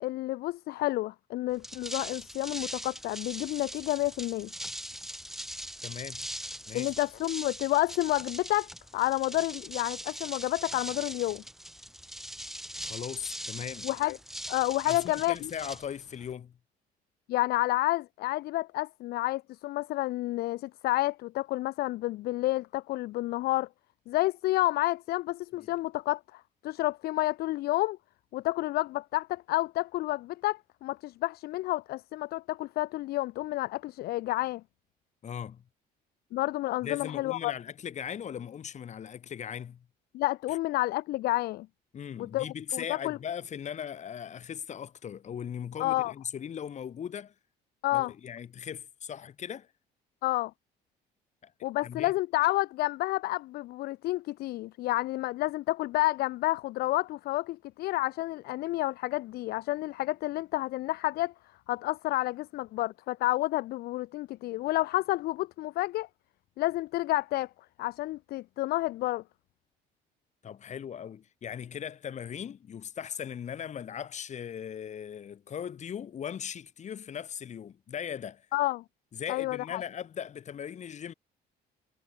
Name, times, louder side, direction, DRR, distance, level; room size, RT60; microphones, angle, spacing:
voice 1, 0.0-4.5 6.7-11.4 13.8-14.2 14.5-15.5 17.3-23.7 24.1-28.0 28.3-34.6 36.3-37.5 40.1-41.7 42.2-42.5 42.7-43.2 45.8-46.1 47.8-48.1 50.2-50.5 51.6-61.3 61.7-66.1 66.6-67.5 67.8-69.2 78.5-78.8 79.3-79.8, left 18 dB, 65° left, 0.4 m, -30 dB
sound 1, 1.5-16.3, equal, ahead, 0.9 m, -41 dB
voice 2, 5.8-6.3 6.7-7.0 12.8-13.9 14.8-16.6 25.6-25.7 35.2-35.6 36.8-39.9 41.9-47.3 47.9-49.7 51.4-51.5 51.8-52.1 70.4-78.5 79.1-81.1, left 8 dB, 45° left, 2.0 m, -39 dB
cardioid pair, 110°, 17 cm